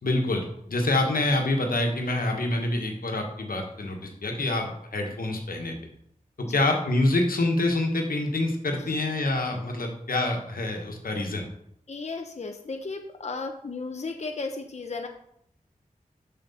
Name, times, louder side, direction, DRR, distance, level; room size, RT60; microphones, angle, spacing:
voice 1, 0.0-5.8 6.4-11.5, left 2 dB, 90° left, 2 dB, 1.3 m, -26 dB
voice 2, 11.9-15.1, left 3 dB, 50° left, 4 dB, 0.8 m, -34 dB
7.6 x 6.5 x 4.2 m, 0.72 s
wide cardioid pair, 55°, 14 cm